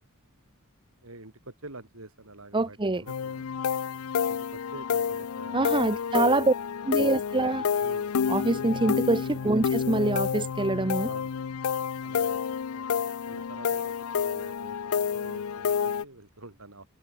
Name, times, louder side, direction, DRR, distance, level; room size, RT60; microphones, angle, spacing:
voice 1, 1.0-3.5 4.3-6.0 7.8-8.1 11.1-11.3 12.0-14.8 15.1-16.9, right 2 dB, 70° right, 4.9 m, -47 dB
voice 2, 2.5-3.0 5.5-6.5 6.8-7.6 8.3-11.1, right 2 dB, 25° right, 0.9 m, -25 dB
sound 1, 3.1-16.0, left 7 dB, 80° left, 0.5 m, -29 dB
head